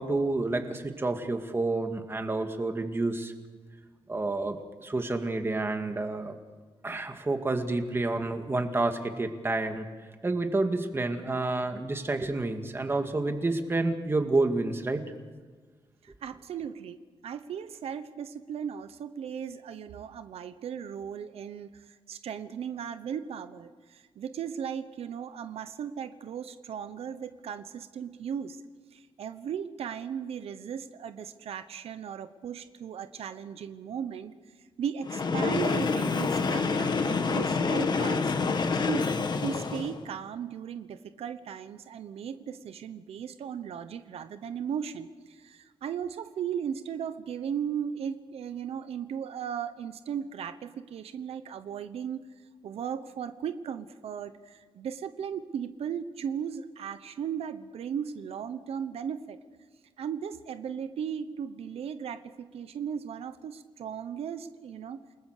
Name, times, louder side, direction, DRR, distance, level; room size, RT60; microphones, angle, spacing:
voice 1, 0.0-3.3 4.1-6.4 6.8-9.9 10.2-15.0, right 2 dB, 25° right, 6 dB, 2.2 m, -29 dB
voice 2, 16.0-28.6 28.9-34.3 34.8-38.5 38.9-39.1 39.4-52.3 52.6-59.4 60.0-65.0, right 8 dB, 90° right, 11 dB, 1.0 m, -36 dB
Train, 35.0-40.0, left 4 dB, 45° left, 1.9 m, -27 dB
29.0 x 20.5 x 6.7 m, 1.4 s
wide cardioid pair, 120°, 10 cm